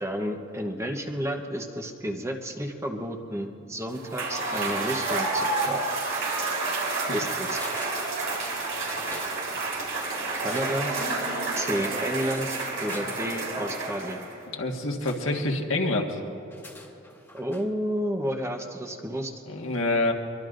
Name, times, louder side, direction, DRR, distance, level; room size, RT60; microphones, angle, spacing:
voice 1, 0.0-5.8 7.1-7.6 10.3-10.9 11.6-14.2 17.3-19.3, equal, 15° right, 3 dB, 1.0 m, -31 dB
Cheering / Applause / Crowd, 3.9-14.4, right 3 dB, 90° right, 4.4 m, -29 dB
sound 1, 7.5-8.6 8.9-9.4 10.3-11.2 12.4-13.1 15.0-15.5 16.4-17.7 18.0-18.1, left 2 dB, 10° left, 1.7 m, -44 dB
voice 2, 14.5-16.2 19.5-20.1, left 2 dB, 70° left, 2 dB, 1.6 m, -27 dB
24.0 x 23.0 x 2.6 m, 3.0 s
head